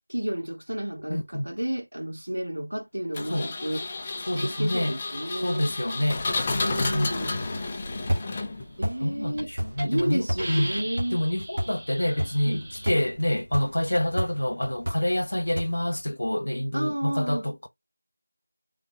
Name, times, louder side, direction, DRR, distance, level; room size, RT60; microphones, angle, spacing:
voice 1, 0.1-3.8 4.2-5.7 6.4-7.3 8.8-9.5 9.8-11.2 12.5-12.6 16.7-17.5, right 1 dB, 70° right, 2.1 m, -31 dB
voice 2, 1.1-1.4 3.3-3.5 4.3-5.0 5.4-6.3 6.9-7.3 9.0-10.8 11.1-17.7, left 1 dB, 55° left, 0.9 m, -27 dB
Engine, 3.1-8.8, left 3 dB, 10° left, 0.4 m, -31 dB
sound 1, 6.5-16.1, equal, 30° right, 1.9 m, -35 dB
Hiss, 8.8-9.0 9.4-9.5 9.8-10.0 10.4-13.0, right 1 dB, 5° right, 1.1 m, -37 dB
3.8 x 3.4 x 3.3 m
figure-of-eight pair, 175°, 0 cm